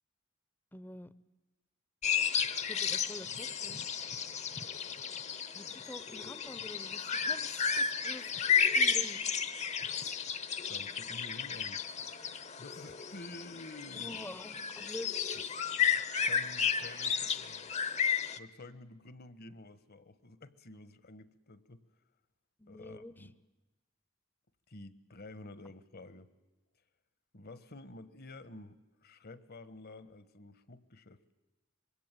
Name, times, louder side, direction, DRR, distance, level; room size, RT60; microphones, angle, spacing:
voice 1, 0.7-1.1 2.7-3.8 5.5-9.2 13.9-15.1 22.6-23.1, left 1 dB, 10° left, 16 dB, 0.8 m, -47 dB
sound 1, 2.0-18.4, left 6 dB, 35° left, 0.9 m, -33 dB
voice 2, 10.7-11.8 12.6-14.3 15.3-17.8 18.4-21.8 22.7-23.3 24.7-26.3 27.3-31.2, left 2 dB, 50° left, 14 dB, 1.3 m, -50 dB
25.5 x 22.0 x 9.1 m, 1.1 s
head